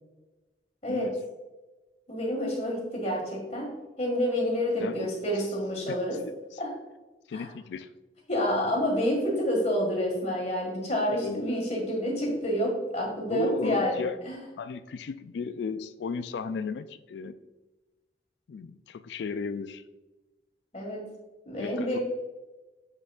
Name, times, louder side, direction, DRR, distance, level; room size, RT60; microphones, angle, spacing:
voice 1, 2.1-3.7 4.0-6.2 6.6-6.7 7.3-7.5 8.3-14.4 20.7-21.0 21.5-22.0, equal, 40° left, -1 dB, 1.8 m, -28 dB
voice 2, 4.8-5.1 5.9-6.0 7.3-7.9 11.1-11.5 13.3-14.2 14.6-17.3 18.5-19.8 21.6-22.0, left 5 dB, 75° left, 13 dB, 0.3 m, -35 dB
7.3 x 6.1 x 2.4 m, 1.1 s
head